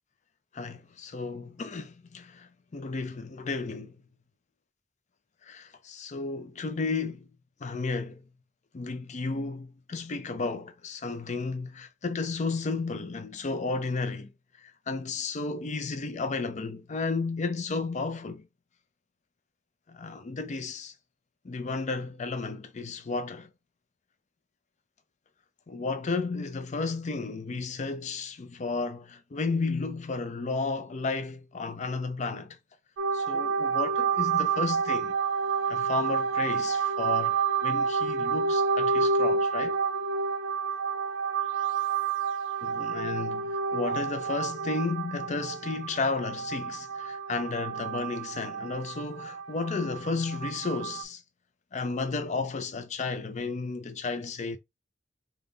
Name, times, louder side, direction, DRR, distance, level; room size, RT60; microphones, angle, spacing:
voice 1, 0.5-4.0 5.4-7.3 7.6-8.2 8.7-14.3 14.6-18.4 19.9-20.9 21.4-23.5 25.7-32.6 33.1-35.1 35.7-39.8 42.6-51.2 51.7-54.6, left 3 dB, 40° left, 0.5 m, -33 dB
sound 1, 33.0-51.0, right 5 dB, 90° right, 0.5 m, -29 dB
3.6 x 2.3 x 3.8 m
head